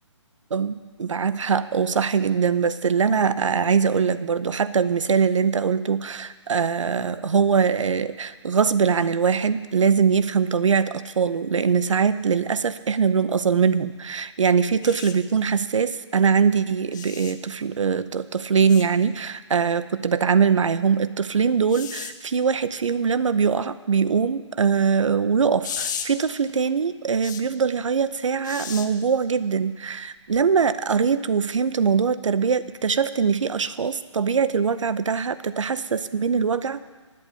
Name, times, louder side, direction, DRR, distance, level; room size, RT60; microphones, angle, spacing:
voice 1, 0.5-36.8, right 6 dB, 80° right, 14 dB, 0.7 m, -22 dB
sound 1, 14.8-15.1 16.9-17.3 18.7-18.9 21.7-22.1 25.6-26.1 27.2-27.4 28.4-28.9 30.3-30.5, left 7 dB, 40° left, 0.8 m, -33 dB
9.1 x 8.5 x 8.5 m, 1.4 s
hypercardioid pair, 155°, 16 cm